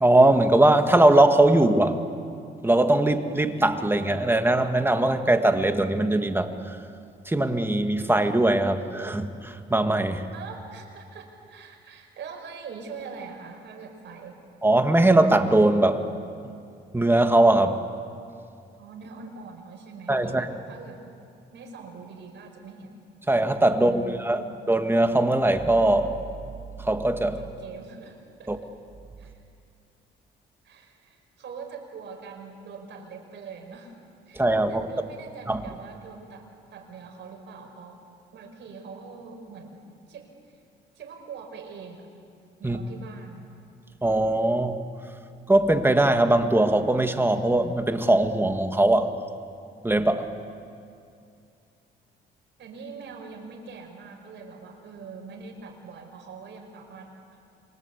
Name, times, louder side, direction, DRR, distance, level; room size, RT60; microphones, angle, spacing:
voice 1, 0.0-2.0 2.6-6.8 7.3-10.3 14.6-16.0 16.9-17.8 20.1-20.5 23.3-26.1 26.8-27.4 28.5-28.6 34.4-34.9 35.5-35.6 42.6-42.8 44.0-44.8 45.5-49.1 49.8-50.3, right 1 dB, 10° right, 7 dB, 1.9 m, -21 dB
voice 2, 10.3-14.4 18.8-21.0 21.5-22.9 23.7-24.5 27.3-28.7 29.2-29.4 30.6-33.9 34.3-38.0 38.3-40.3 40.9-42.1 42.6-43.5 52.6-57.1, right 5 dB, 65° right, 3 dB, 5.1 m, -43 dB
27.0 x 23.5 x 8.3 m, 2.4 s
cardioid pair, 90°, 20 cm